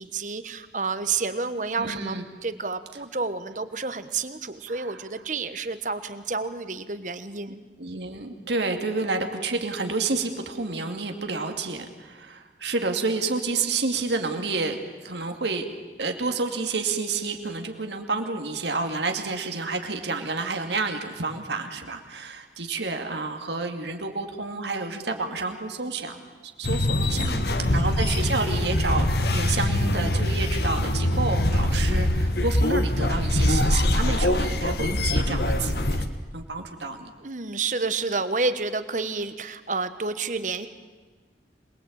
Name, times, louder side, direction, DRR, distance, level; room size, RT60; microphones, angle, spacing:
voice 1, 0.0-7.6 27.1-27.9 37.2-40.7, right 4 dB, 45° right, 11 dB, 1.3 m, -30 dB
voice 2, 1.8-2.2 4.7-5.0 7.5-15.7 16.0-26.2 26.6-27.3 27.7-36.0 36.3-37.1, right 3 dB, 80° right, 4 dB, 2.5 m, -29 dB
sound 1, 26.6-36.1, left 1 dB, 65° left, 1.5 m, -23 dB
26.5 x 20.5 x 8.8 m, 1.3 s
head